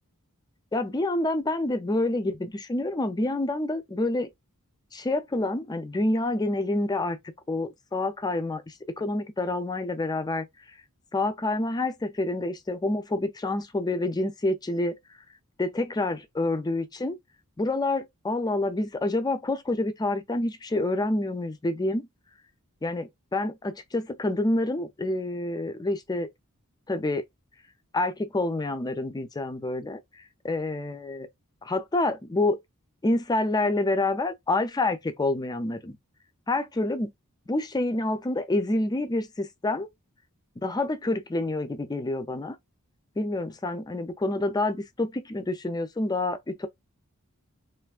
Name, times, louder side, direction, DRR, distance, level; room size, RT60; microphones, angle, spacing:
voice 1, 0.7-4.3 4.9-7.2 7.5-10.5 11.1-15.0 15.6-17.2 17.6-22.1 22.8-26.3 26.9-27.2 27.9-30.0 30.4-31.3 31.6-32.6 33.0-36.0 36.5-37.1 37.5-39.9 40.6-42.6 43.2-46.7, left 2 dB, 20° left, 0.4 m, -27 dB
3.3 x 2.5 x 2.3 m
head